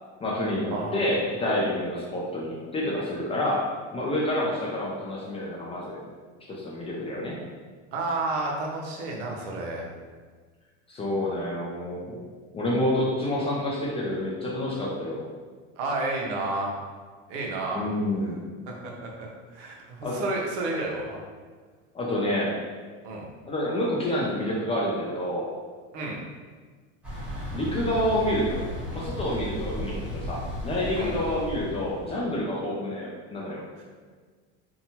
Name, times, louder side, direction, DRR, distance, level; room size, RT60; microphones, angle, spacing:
voice 1, 0.2-3.6 3.9-6.0 6.5-7.4 10.9-12.2 12.5-15.2 17.7-18.4 20.0-20.2 21.9-22.6 23.4-25.5 27.5-33.6, left 1 dB, 20° left, -5 dB, 0.3 m, -28 dB
voice 2, 7.9-9.9 15.8-16.7 17.3-17.8 18.7-21.2 23.0-23.3 25.9-26.2 31.0-31.1 33.8-33.9, right 2 dB, 70° right, -1 dB, 0.7 m, -31 dB
Thunder / Bicycle, 27.0-32.1, equal, 5° right, 0.9 m, -35 dB
2.8 x 2.2 x 2.8 m, 1.5 s
supercardioid pair, 120°, 35 cm